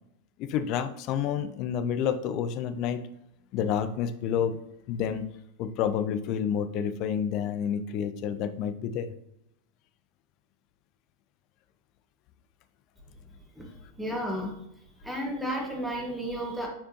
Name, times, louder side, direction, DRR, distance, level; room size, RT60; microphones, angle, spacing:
voice 1, 0.4-3.0 3.5-4.6 4.9-5.3 5.6-9.1, left 8 dB, 40° left, 11 dB, 0.5 m, -29 dB
voice 2, 14.0-14.5 15.0-16.7, equal, 5° right, -1 dB, 1.6 m, -32 dB
7.7 x 4.3 x 2.9 m, 0.78 s
figure-of-eight pair, 90°, 0 cm